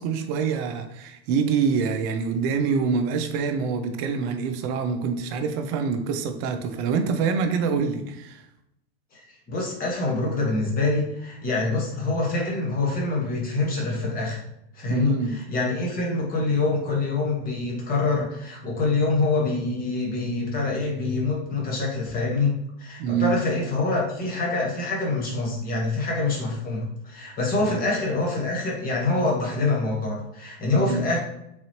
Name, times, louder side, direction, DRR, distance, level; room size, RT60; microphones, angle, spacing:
voice 1, 0.0-8.4 14.9-15.4 23.0-23.4 27.6-27.8 30.7-31.1, right 5 dB, 40° right, 0.5 m, -25 dB
voice 2, 9.5-14.4 14.7-31.2, left 3 dB, 25° left, 1.2 m, -25 dB
3.8 x 3.0 x 2.9 m
hypercardioid pair, 130°, 34 cm